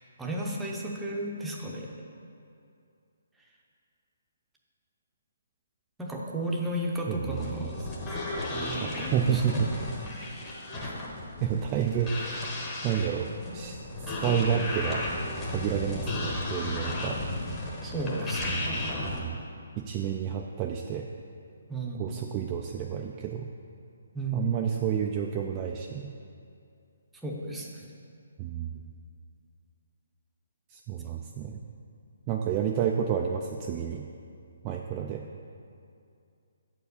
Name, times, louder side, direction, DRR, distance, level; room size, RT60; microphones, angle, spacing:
voice 1, 0.2-1.9 6.0-7.7 8.5-9.4 17.8-19.2 21.7-22.2 24.1-24.5 27.2-27.9, right 1 dB, 5° right, -2 dB, 0.7 m, -34 dB
voice 2, 7.1-7.6 8.8-10.9 11.4-12.6 12.8-13.8 14.0-15.1 15.5-17.2 19.0-19.4 19.8-21.1 22.0-23.5 24.3-26.1 28.4-28.8 30.7-31.6 32.3-34.1 34.6-35.2, right 8 dB, 20° right, 1 dB, 0.3 m, -30 dB
sound 1, 7.3-19.2, left 1 dB, 20° left, 1.1 m, -34 dB
8.0 x 4.7 x 6.7 m, 2.5 s
hypercardioid pair, 165°, 0 cm